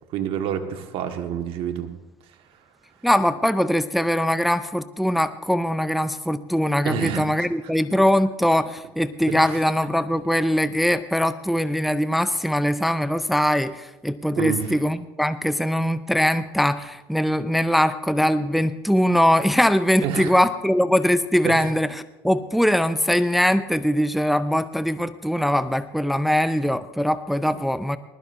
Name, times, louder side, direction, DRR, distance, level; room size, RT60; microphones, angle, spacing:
voice 1, 0.1-1.9 6.8-7.5 9.3-9.4 14.4-14.6 20.0-20.3 21.4-21.6, right 8 dB, 65° right, 5 dB, 1.6 m, -27 dB
voice 2, 3.0-28.0, equal, ahead, 12 dB, 0.5 m, -22 dB
20.0 x 13.0 x 2.7 m, 0.99 s
supercardioid pair, 85°, 10 cm